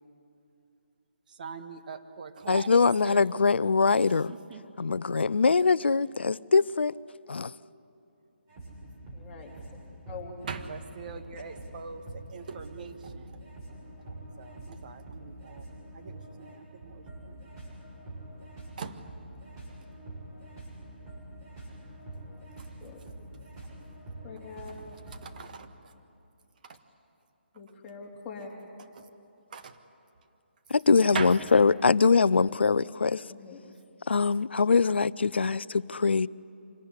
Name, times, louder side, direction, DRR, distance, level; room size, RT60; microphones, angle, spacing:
voice 1, 1.3-3.2 3.9-4.6 10.4-13.4 14.4-15.6 15.9-17.6 18.8-19.0 25.2-25.9 26.6-26.8 29.0-29.1 29.5-29.8 31.1-31.4, right 5 dB, 45° right, 1.6 m, -41 dB
voice 2, 2.5-4.3 4.8-6.9 7.3-7.5 30.7-33.2 34.1-36.3, left 4 dB, 70° left, 0.5 m, -23 dB
sound 1, 8.5-25.4, right 1 dB, 25° right, 6.8 m, -45 dB
voice 3, 9.1-9.5 10.1-10.3 11.3-11.4 22.8-23.2 24.2-24.9 27.5-28.5 33.3-33.7, left 5 dB, 20° left, 3.5 m, -44 dB
25.0 x 18.5 x 9.8 m
figure-of-eight pair, 145°, 6 cm